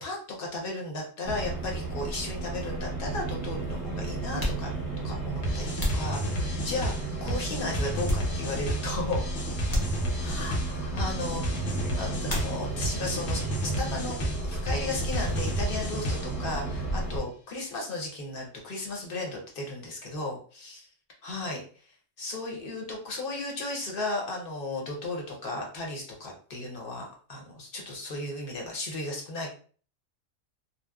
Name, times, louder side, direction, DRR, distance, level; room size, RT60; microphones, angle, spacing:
voice 1, 0.0-4.7 5.0-9.2 10.2-20.8 21.2-29.5, left 2 dB, 50° left, 0 dB, 0.8 m, -35 dB
sound 1, 1.2-17.2, right 3 dB, 20° right, 0.6 m, -33 dB
sound 2, 4.3-6.9 7.4-8.8 9.1-9.2 9.7-10.5 12.2-13.0 13.3-14.0 14.2-16.4, left 1 dB, 25° left, 0.5 m, -36 dB
sound 3, 5.4-16.5, equal, 80° left, 1.0 m, -32 dB
2.7 x 2.1 x 2.3 m, 0.42 s
omnidirectional pair, 1.3 m